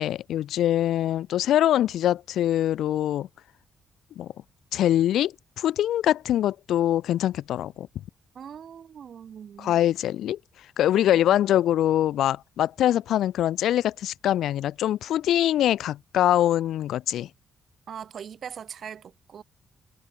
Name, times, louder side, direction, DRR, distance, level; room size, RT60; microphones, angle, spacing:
voice 1, 0.0-3.3 4.2-4.3 4.7-7.9 9.6-10.4 10.8-17.3, left 12 dB, 85° left, 0.5 m, -23 dB
voice 2, 8.3-9.8 10.9-11.2 17.9-19.4, right 8 dB, 45° right, 5.2 m, -41 dB
wide cardioid pair, 175°, 0 cm